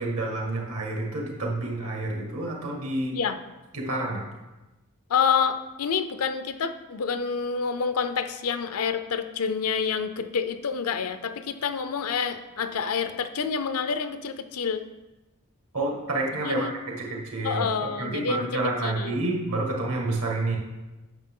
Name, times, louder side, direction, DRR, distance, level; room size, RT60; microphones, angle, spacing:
voice 1, 0.0-3.2 3.7-4.2 15.7-17.7 18.0-20.6, right 2 dB, 75° right, -1 dB, 1.9 m, -29 dB
voice 2, 5.1-14.8 16.4-16.7 17.4-19.2, left 6 dB, 80° left, 10 dB, 0.6 m, -28 dB
9.0 x 6.5 x 3.8 m, 1.1 s
head